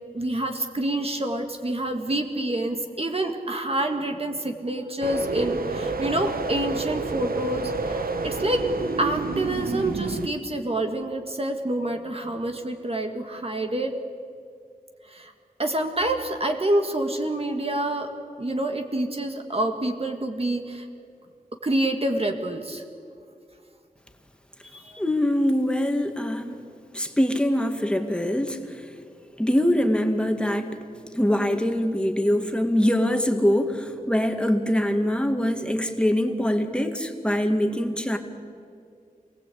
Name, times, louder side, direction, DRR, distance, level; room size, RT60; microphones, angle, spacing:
voice 1, 0.1-8.7 9.0-14.0 15.0-15.3 15.6-18.1 18.4-20.9 21.6-22.8 24.6-25.0, right 1 dB, 40° right, 4 dB, 1.8 m, -27 dB
sound 1, 5.0-10.3, right 3 dB, 80° right, 1.3 m, -29 dB
voice 2, 24.9-26.6 26.9-28.6 29.4-30.7 31.1-38.2, equal, 5° left, 5 dB, 2.1 m, -23 dB
28.0 x 18.5 x 8.5 m, 2.3 s
wide cardioid pair, 80°, 15 cm